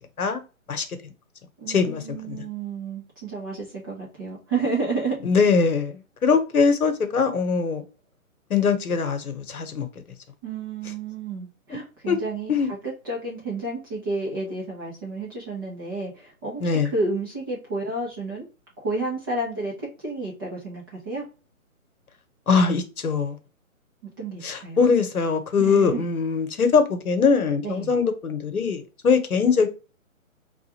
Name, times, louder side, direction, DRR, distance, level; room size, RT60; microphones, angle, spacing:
voice 1, 0.7-1.1 1.7-2.5 5.2-7.8 8.5-9.9 12.1-12.2 12.5-12.7 16.6-16.9 22.5-23.4 24.4-29.7, left 5 dB, 85° left, 1.0 m, -22 dB
voice 2, 1.6-5.2 10.4-18.5 18.8-21.2 24.2-24.9 25.6-26.0 27.6-27.9, right 3 dB, 15° right, 0.7 m, -31 dB
4.8 x 2.5 x 2.9 m
figure-of-eight pair, 145°, 42 cm